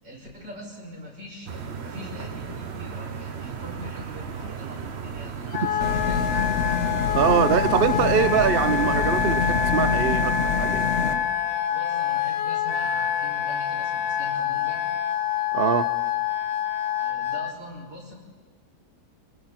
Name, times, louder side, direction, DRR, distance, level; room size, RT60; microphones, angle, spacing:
voice 1, 0.0-6.4 11.7-14.9 17.0-18.1, equal, 85° right, -4 dB, 6.5 m, -42 dB
sound 1, 1.5-9.7, right 6 dB, 45° right, 1.0 m, -35 dB
Wind instrument woodwind instrument, 5.5-17.5, left 8 dB, 85° left, 1.5 m, -26 dB
sound 2, 5.8-11.1, left 6 dB, 45° left, 1.5 m, -26 dB
voice 2, 7.1-10.9 15.5-15.9, right 9 dB, 60° right, 13 dB, 0.5 m, -23 dB
29.5 x 20.5 x 4.3 m, 1.5 s
omnidirectional pair, 1.8 m